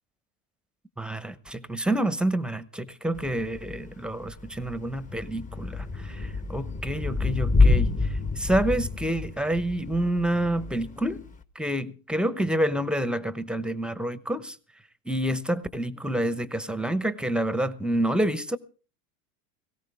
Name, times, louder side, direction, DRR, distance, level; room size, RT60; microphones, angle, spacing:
voice 1, 1.0-11.2 11.5-14.6 15.1-18.6, right 1 dB, ahead, 0.9 m, -28 dB
Thunder / Rain, 3.1-11.4, left 3 dB, 15° left, 1.1 m, -27 dB
18.5 x 16.5 x 3.5 m
hypercardioid pair, 100°, 45 cm